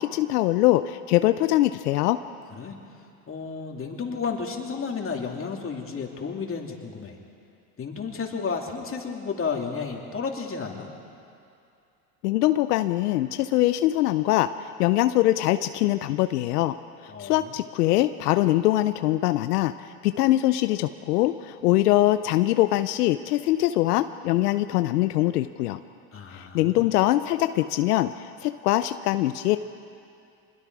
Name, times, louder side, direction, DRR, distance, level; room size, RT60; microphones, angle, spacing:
voice 1, 0.0-2.2 12.2-16.7 17.0-25.8 26.3-29.6, left 15 dB, 85° left, 11 dB, 0.7 m, -23 dB
voice 2, 3.3-7.1 7.8-10.9 17.1-17.6 26.1-26.8, left 5 dB, 30° left, 1 dB, 3.0 m, -32 dB
25.5 x 21.5 x 4.8 m, 2.5 s
hypercardioid pair, 90°, 46 cm